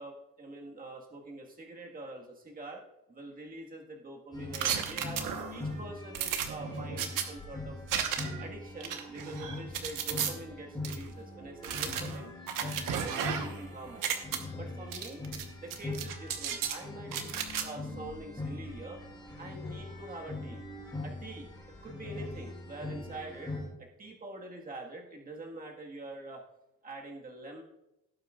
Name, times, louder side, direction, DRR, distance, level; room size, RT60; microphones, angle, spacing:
voice 1, 0.0-2.8 3.1-5.2 5.5-8.1 8.4-14.1 14.5-15.2 15.6-19.0 19.4-20.6 21.0-21.5 21.8-26.4 26.8-27.6, right 2 dB, 25° right, 0 dB, 1.7 m, -45 dB
sound 1, 4.3-23.7, left 2 dB, 15° left, 2.6 m, -42 dB
sound 2, 4.5-5.6 6.1-7.2 7.9-8.4 8.8-10.3 10.8-11.0 11.6-13.6 13.9-14.4 14.9-15.4 15.7-16.8 17.1-17.6, right 8 dB, 80° right, 1.2 m, -34 dB
17.5 x 8.1 x 2.4 m, 0.88 s
cardioid pair, 150°, 32 cm